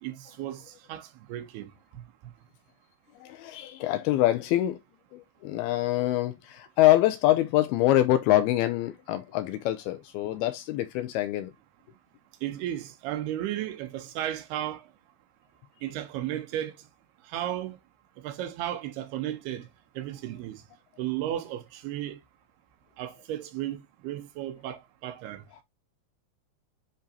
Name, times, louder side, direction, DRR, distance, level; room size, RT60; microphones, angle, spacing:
voice 1, 0.0-1.7 12.4-14.9 15.8-16.7 17.3-17.8 18.2-19.7 20.0-20.6 21.0-22.2 23.0-25.4, right 12 dB, 75° right, 2.7 m, -34 dB
voice 2, 3.2-4.8 5.1-11.5, left 14 dB, 80° left, 2.4 m, -25 dB
10.5 x 3.7 x 2.7 m
omnidirectional pair, 4.8 m